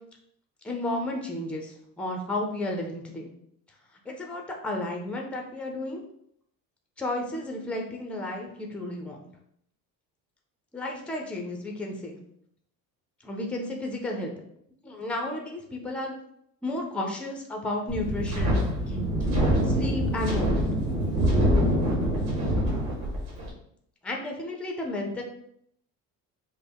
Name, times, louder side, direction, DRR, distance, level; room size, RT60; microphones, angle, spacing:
voice 1, 0.6-3.3 4.1-6.0 7.0-9.3 10.7-12.2 13.2-14.3 14.8-16.1 16.6-19.1 19.6-20.8 24.0-25.2, left 1 dB, 5° left, 1 dB, 0.5 m, -33 dB
Wind, 17.9-23.5, equal, 65° right, 1.8 m, -25 dB
5.2 x 2.1 x 4.5 m, 0.71 s
cardioid pair, 170°, 31 cm